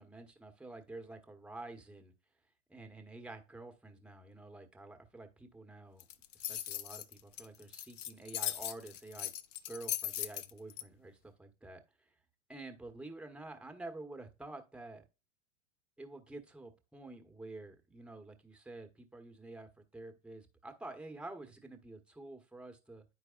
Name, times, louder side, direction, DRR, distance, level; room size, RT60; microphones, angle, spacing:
voice 1, 0.0-2.1 2.7-6.1 6.5-9.3 9.7-12.1 12.5-15.0 16.0-23.0, right 2 dB, 5° right, 6 dB, 0.9 m, -49 dB
keys jingling, 6.0-10.8, left 11 dB, 70° left, 0.6 m, -39 dB
9.8 x 4.8 x 2.3 m, 0.28 s
hypercardioid pair, 100°, 39 cm